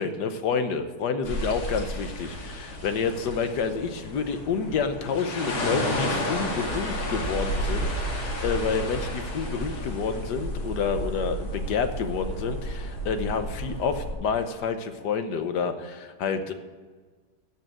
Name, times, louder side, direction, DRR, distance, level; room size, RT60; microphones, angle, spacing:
voice 1, 0.0-16.5, left 5 dB, 60° left, 9 dB, 1.4 m, -29 dB
sound 1, 1.2-14.1, equal, 75° left, 3.2 m, -31 dB
15.0 x 5.7 x 7.5 m, 1.5 s
omnidirectional pair, 2.2 m